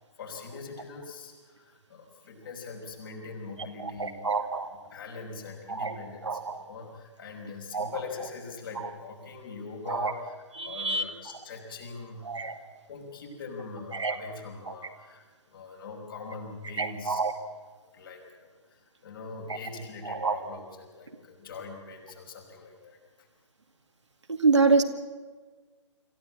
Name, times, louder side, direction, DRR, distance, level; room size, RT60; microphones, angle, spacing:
voice 1, 0.2-4.5 4.9-10.3 10.6-12.5 12.9-17.2 17.9-23.3, left 4 dB, 45° left, 1 dB, 5.5 m, -42 dB
voice 2, 3.8-4.7 5.7-5.9 6.2-6.6 7.7-7.9 9.9-10.1 10.6-11.0 12.3-12.6 13.9-14.2 14.7-14.8 16.8-17.4 20.1-20.4 24.3-24.8, right 4 dB, 70° right, 5 dB, 2.3 m, -26 dB
26.0 x 15.5 x 8.8 m, 1.4 s
figure-of-eight pair, 140°, 16 cm